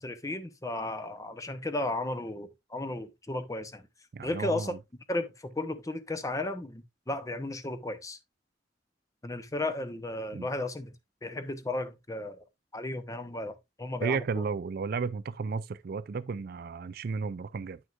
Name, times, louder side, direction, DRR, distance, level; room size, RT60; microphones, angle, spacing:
voice 1, 0.0-3.8 4.2-4.7 5.1-8.2 9.2-10.9 11.2-12.4 12.7-14.4, left 2 dB, 20° left, 0.7 m, -34 dB
voice 2, 4.1-4.8 10.3-10.5 14.0-17.8, right 5 dB, 60° right, 0.4 m, -33 dB
9.1 x 6.2 x 2.4 m
head